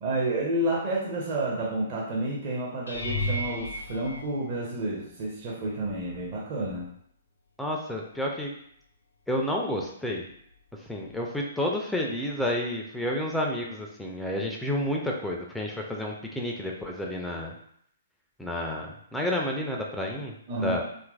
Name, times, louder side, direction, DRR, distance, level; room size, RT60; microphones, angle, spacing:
voice 1, 0.0-6.9 20.5-20.8, right 1 dB, 40° right, -4 dB, 0.6 m, -30 dB
sound 1, 2.9-5.1 5.8-6.3 6.6-6.8 11.1-11.2, left 1 dB, 80° left, 0.4 m, -34 dB
voice 2, 7.6-8.5 9.3-10.3 10.9-17.5 18.4-20.3 20.6-20.8, left 1 dB, 5° left, -1 dB, 0.4 m, -30 dB
2.8 x 2.5 x 2.3 m, 0.69 s
figure-of-eight pair, 120°, 0 cm